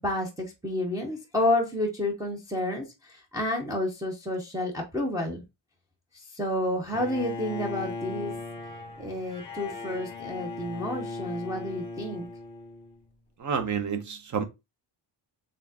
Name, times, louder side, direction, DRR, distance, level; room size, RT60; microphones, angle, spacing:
voice 1, 0.0-5.4 6.3-8.3 9.0-12.3, left 1 dB, 10° right, 0.6 m, -30 dB
Bowed string instrument, 6.9-13.0, left 3 dB, 10° left, 1.0 m, -38 dB
voice 2, 13.4-14.4, right 7 dB, 40° right, 0.7 m, -29 dB
4.2 x 3.6 x 2.7 m
wide cardioid pair, 180°, 44 cm